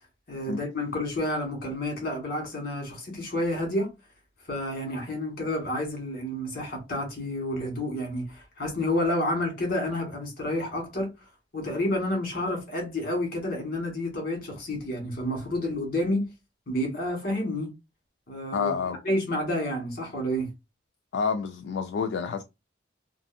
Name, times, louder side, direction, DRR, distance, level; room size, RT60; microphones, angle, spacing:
voice 1, 0.3-3.9 4.5-11.1 11.5-16.3 16.7-17.7 18.3-18.7 19.0-20.5, left 1 dB, 50° left, 1.3 m, -29 dB
voice 2, 18.5-19.0 21.1-22.4, left 5 dB, 75° left, 0.3 m, -28 dB
2.6 x 2.5 x 2.5 m
head